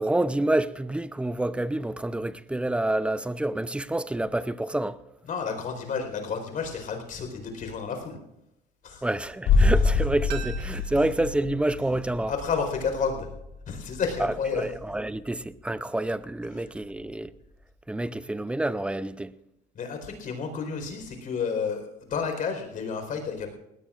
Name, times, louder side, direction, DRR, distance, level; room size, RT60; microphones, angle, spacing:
voice 1, 0.0-5.0 9.0-12.3 14.2-17.3 17.9-19.3, right 1 dB, 5° right, 0.6 m, -28 dB
voice 2, 5.2-8.2 8.8-9.1 10.9-11.0 12.3-13.3 13.7-14.6 19.7-23.5, left 5 dB, 50° left, 4.4 m, -31 dB
sound 1, 9.5-15.2 15.5-15.6, left 4 dB, 70° left, 3.1 m, -27 dB
sound 2, 10.3-13.1 13.4-13.5, right 11 dB, 75° right, 1.9 m, -44 dB
20.0 x 17.5 x 2.5 m
cardioid pair, 105°, 18 cm